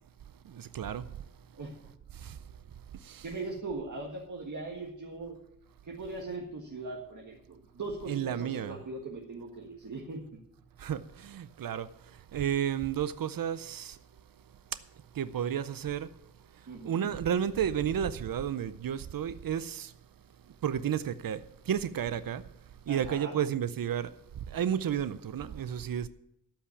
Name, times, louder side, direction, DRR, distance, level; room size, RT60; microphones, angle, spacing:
voice 1, 0.4-1.1 2.1-2.4 3.0-3.3 8.1-8.8 10.8-14.0 15.1-16.1 16.8-19.9 20.6-22.4 22.9-24.1 24.5-26.1, right 9 dB, 80° right, 0.6 m, -32 dB
voice 2, 3.2-5.4 5.8-10.2 16.7-17.1 22.9-23.4, right 3 dB, 60° right, 1.7 m, -40 dB
13.5 x 5.8 x 9.6 m
wide cardioid pair, 130°, 33 cm